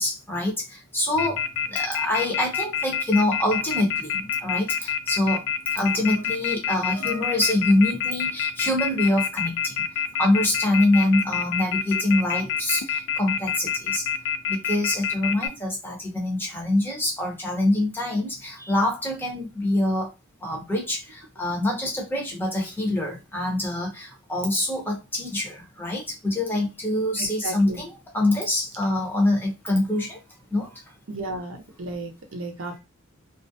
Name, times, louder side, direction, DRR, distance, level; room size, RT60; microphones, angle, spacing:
voice 1, 0.0-5.5 5.7-9.8 10.2-14.1 14.5-20.1 20.4-30.2 30.5-30.8 32.7-32.8, left 1 dB, 10° left, 0.7 m, -25 dB
Telephone, 1.2-15.5, left 7 dB, 60° left, 0.3 m, -26 dB
voice 2, 27.2-27.8 31.1-32.8, right 2 dB, 70° right, 0.6 m, -34 dB
2.3 x 2.1 x 2.6 m
head